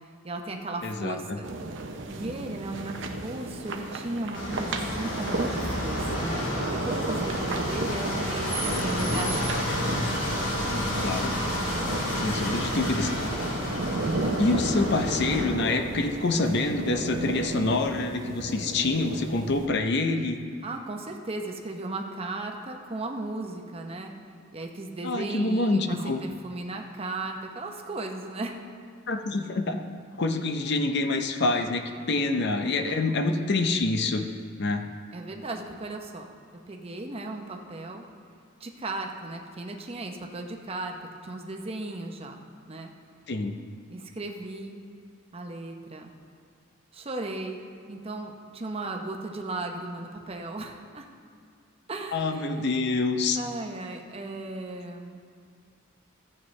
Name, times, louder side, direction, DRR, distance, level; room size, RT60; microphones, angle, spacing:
voice 1, 0.2-1.5 2.1-10.1 12.2-12.3 20.6-24.1 24.5-28.6 35.1-36.3 36.7-38.0 38.6-41.0 41.2-42.9 43.9-44.8 45.3-46.1 46.9-51.1 51.9-52.6 53.4-55.2, right 2 dB, 30° right, 3 dB, 0.7 m, -36 dB
voice 2, 0.8-1.4 11.0-11.3 12.2-13.1 14.4-20.4 25.0-26.2 29.1-29.8 30.2-34.2 34.6-34.8 43.3-43.6 52.1-53.4, left 3 dB, 55° left, 6 dB, 0.6 m, -26 dB
sound 1, 1.4-19.7, right 2 dB, 65° right, 0.7 m, -34 dB
sound 2, 4.3-15.4, left 1 dB, 70° left, 2.4 m, -30 dB
sound 3, 8.4-17.8, right 1 dB, 80° right, 1.4 m, -41 dB
14.0 x 7.9 x 3.2 m, 2.2 s
head